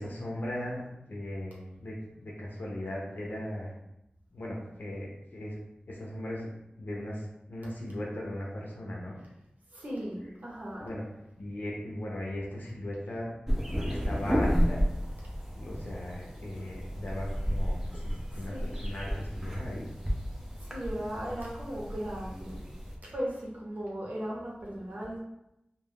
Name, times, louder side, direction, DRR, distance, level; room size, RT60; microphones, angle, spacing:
voice 1, 0.0-3.7 4.3-5.6 5.9-6.5 6.8-9.2 10.8-11.0 11.4-13.3 13.9-14.8 15.5-19.9, left 1 dB, 65° left, -3 dB, 0.6 m, -38 dB
voice 2, 9.7-10.9 18.3-18.8 20.6-22.6 23.1-25.2, equal, 55° right, -4 dB, 0.9 m, -37 dB
sound 1, 13.5-23.0, equal, 10° right, 0.5 m, -32 dB
2.3 x 2.3 x 3.4 m, 0.86 s
wide cardioid pair, 80°, 3 cm